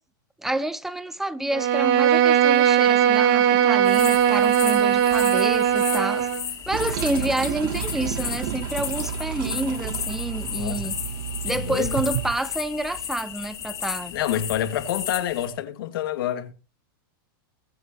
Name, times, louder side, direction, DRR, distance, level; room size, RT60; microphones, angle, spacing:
voice 1, 0.4-6.3 6.7-10.9 11.4-14.1, right 1 dB, 5° right, 0.7 m, -29 dB
Bowed string instrument, 1.5-6.5, right 9 dB, 40° right, 1.4 m, -19 dB
sound 1, 3.8-15.5, left 9 dB, 25° left, 2.7 m, -34 dB
Toilet flush, 6.7-12.4, right 9 dB, 65° right, 1.1 m, -31 dB
voice 2, 10.4-10.9 11.4-12.0 14.1-16.5, left 11 dB, 70° left, 2.1 m, -28 dB
22.5 x 7.8 x 2.9 m
supercardioid pair, 145°, 12 cm